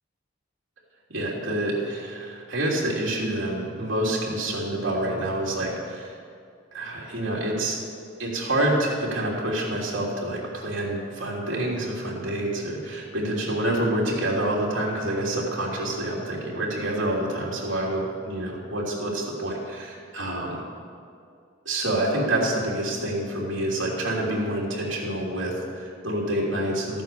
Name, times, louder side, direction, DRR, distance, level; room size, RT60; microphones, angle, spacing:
voice 1, 1.1-6.2 6.7-7.8 8.2-20.6 21.6-27.0, right 1 dB, 80° right, -4 dB, 3.2 m, -27 dB
14.5 x 9.3 x 6.9 m, 2.3 s
head